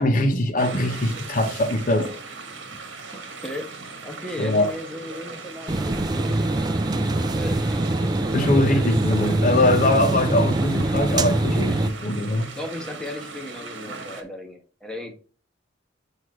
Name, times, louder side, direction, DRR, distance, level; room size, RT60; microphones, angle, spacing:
voice 1, 0.0-2.1 4.4-4.7 6.3-6.4 8.3-12.5, left 1 dB, 45° left, 0.9 m, -22 dB
sound 1, 0.6-14.2, right 4 dB, 85° right, 1.2 m, -38 dB
voice 2, 3.3-3.7 4.0-6.4 7.1-7.6 7.9-8.6 12.6-15.2, left 1 dB, 5° left, 1.1 m, -36 dB
sound 2, 5.7-11.9, right 2 dB, 20° right, 0.4 m, -23 dB
7.9 x 2.7 x 4.8 m
head